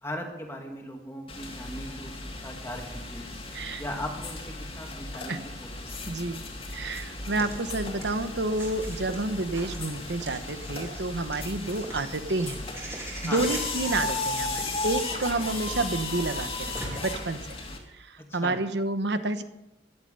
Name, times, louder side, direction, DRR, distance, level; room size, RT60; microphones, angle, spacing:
voice 1, 0.0-2.1 2.4-3.3 3.8-6.4 13.3-13.4 18.2-18.6, left 1 dB, 15° left, 1 dB, 2.3 m, -38 dB
sound 1, 1.3-17.8, left 2 dB, 30° left, 2.5 m, -35 dB
voice 2, 3.5-3.8 5.3-5.4 6.1-12.6 12.9-17.6 17.9-19.4, right 2 dB, 70° right, 10 dB, 1.1 m, -30 dB
Walk footsteps / Bird vocalization bird call bird song, 7.1-17.1, right 1 dB, 15° right, 3.6 m, -43 dB
15.5 x 11.5 x 5.5 m, 0.93 s
head